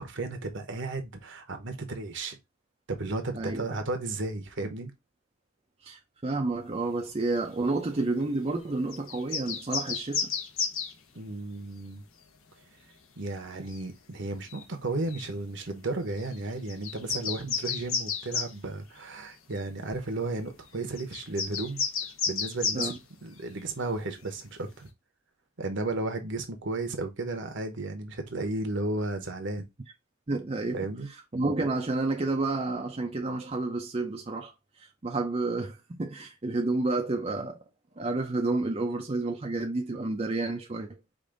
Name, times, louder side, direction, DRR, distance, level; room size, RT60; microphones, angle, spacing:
voice 1, 0.0-2.4 2.9-4.9 11.1-12.1 13.2-21.8 22.2-22.9 23.2-24.9 25.6-29.6 30.7-31.1, right 2 dB, 60° right, 1.1 m, -34 dB
voice 2, 5.8-10.3 13.5-13.6 22.7-23.0 30.3-30.9 31.3-37.6 38.0-41.0, right 2 dB, 30° right, 0.6 m, -30 dB
sound 1, 8.9-10.9 13.7-13.8 14.5-14.6 15.1-15.3 16.2-16.4 16.7-18.5 19.6-19.7 21.0-23.0, left 5 dB, 80° left, 1.1 m, -32 dB
5.1 x 2.7 x 3.8 m
head